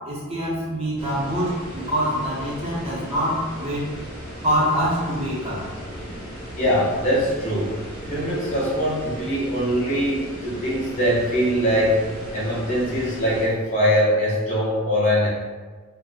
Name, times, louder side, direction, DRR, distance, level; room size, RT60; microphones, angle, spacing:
voice 1, 0.0-3.9 4.4-5.7, equal, 30° right, -6 dB, 0.7 m, -25 dB
sound 1, 1.0-13.5, equal, 10° left, 1.3 m, -36 dB
voice 2, 6.6-12.0 12.3-15.3, equal, 35° left, -7 dB, 0.8 m, -22 dB
2.7 x 2.0 x 2.4 m, 1.4 s
head